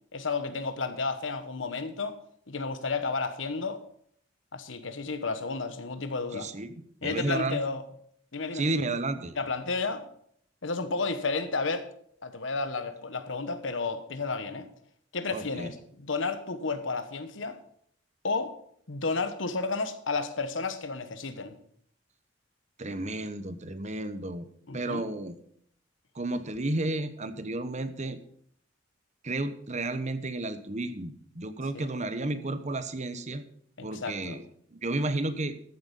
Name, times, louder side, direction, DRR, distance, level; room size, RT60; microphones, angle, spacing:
voice 1, 0.1-2.2 2.5-3.8 4.5-6.5 7.0-7.8 8.3-8.7 9.4-10.1 10.6-11.9 12.2-14.7 15.1-17.6 18.2-18.5 18.9-21.5 24.7-25.0 31.7-31.9 33.8-34.4, left 4 dB, 90° left, 1.2 m, -32 dB
voice 2, 6.3-7.6 8.5-9.3 15.3-15.7 22.8-24.5 24.7-25.3 26.1-28.2 29.2-33.4 33.8-34.4 34.7-35.6, right 2 dB, 40° right, 1.0 m, -32 dB
14.0 x 7.9 x 5.4 m
head